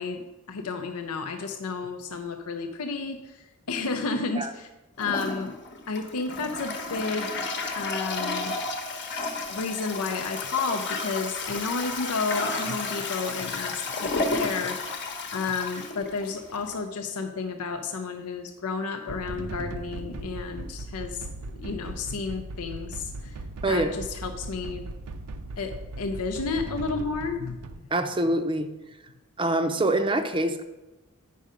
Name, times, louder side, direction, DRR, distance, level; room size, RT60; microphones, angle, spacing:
voice 1, 0.0-4.7 5.0-5.5 5.9-7.4 7.7-8.6 9.5-14.8 15.3-21.3 21.6-23.3 23.7-24.9 25.6-27.6, left 4 dB, 75° left, 5 dB, 0.6 m, -31 dB
Toilet flush, 5.0-16.8, left 3 dB, 50° left, 1.0 m, -32 dB
sound 1, 19.1-27.8, right 2 dB, 85° right, 0.6 m, -38 dB
voice 2, 23.6-23.9 27.9-28.7 29.4-30.6, right 1 dB, 20° right, 8 dB, 0.5 m, -25 dB
8.5 x 5.5 x 5.0 m, 1.1 s
head